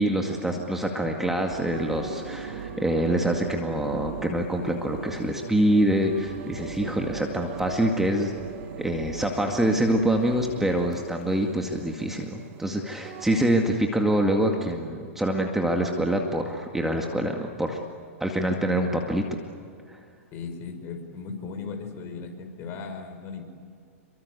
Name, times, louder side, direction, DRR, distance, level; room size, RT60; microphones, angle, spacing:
voice 1, 0.0-8.3 8.8-17.8 18.2-19.4 19.9-20.0, right 1 dB, 5° right, 2 dB, 2.1 m, -25 dB
sound 1, 1.5-10.7, right 5 dB, 75° right, 3.0 m, -39 dB
sound 2, 1.7-13.3, right 7 dB, 45° right, 3.9 m, -45 dB
voice 2, 20.3-23.4, left 5 dB, 35° left, 5 dB, 5.5 m, -37 dB
28.5 x 24.5 x 8.3 m, 2.3 s
hypercardioid pair, 125°, 8 cm